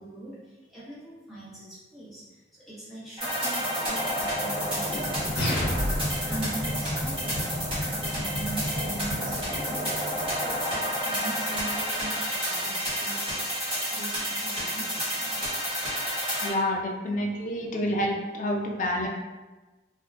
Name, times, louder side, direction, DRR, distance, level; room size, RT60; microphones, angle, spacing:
voice 1, 0.0-13.3 13.6-15.4, right 2 dB, ahead, -11 dB, 1.0 m, -41 dB
sound 1, 3.2-16.5, equal, 30° right, 1.0 m, -29 dB
sound 2, 5.4-6.4, equal, 70° left, 0.9 m, -28 dB
sound 3, 8.7-9.4, equal, 60° right, 0.5 m, -39 dB
voice 2, 16.4-19.1, left 1 dB, 45° left, 1 dB, 0.3 m, -28 dB
3.4 x 2.2 x 2.4 m, 1.2 s
head